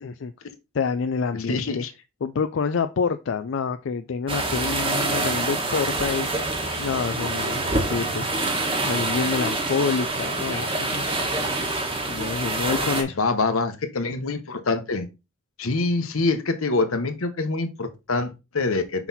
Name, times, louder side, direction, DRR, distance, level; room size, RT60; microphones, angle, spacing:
voice 1, 0.0-0.3 0.7-1.8 2.2-6.3 6.8-8.3 8.8-11.1 12.1-13.2, left 5 dB, 65° left, 0.4 m, -27 dB
voice 2, 1.3-1.9 10.5-10.8 13.2-15.1 15.6-19.1, left 3 dB, 85° left, 1.0 m, -25 dB
sound 1, 4.3-13.0, right 2 dB, 25° right, 1.2 m, -26 dB
5.9 x 4.0 x 4.1 m
head